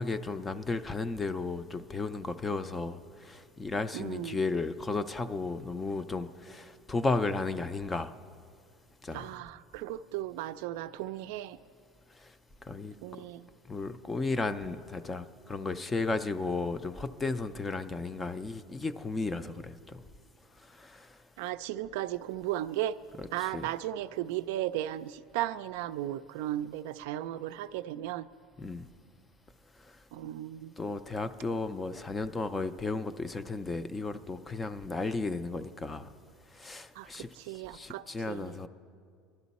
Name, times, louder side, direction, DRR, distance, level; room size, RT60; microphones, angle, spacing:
voice 1, 0.0-8.1 9.0-9.3 12.1-12.3 12.6-13.0 13.7-20.1 20.6-21.2 23.2-23.7 28.6-28.9 29.8-30.0 30.8-36.1 36.5-38.7, left 3 dB, 10° left, 0.4 m, -34 dB
voice 2, 3.9-4.4 9.1-11.6 13.0-13.5 21.4-23.0 23.3-28.3 30.1-30.7 37.0-37.1 37.4-38.6, right 13 dB, 75° right, 0.4 m, -35 dB
21.5 x 12.0 x 4.1 m
cardioid pair, 165°, 0 cm